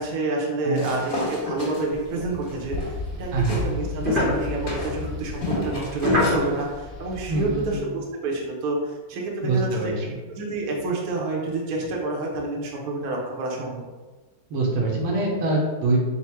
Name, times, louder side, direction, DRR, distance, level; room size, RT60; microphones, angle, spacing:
voice 1, 0.0-2.8 3.2-9.9 10.4-13.8, right 2 dB, 60° right, -2 dB, 1.0 m, -28 dB
sound 1, 0.7-3.7 4.0-6.5, left 2 dB, 45° left, 1.6 m, -31 dB
sound 2, 2.7-7.8, left 2 dB, 45° right, 0.7 m, -28 dB
voice 2, 7.3-7.7 9.4-10.2 14.5-16.0, right 2 dB, 85° right, -3 dB, 1.8 m, -24 dB
4.4 x 2.1 x 4.3 m, 1.3 s
omnidirectional pair, 2.4 m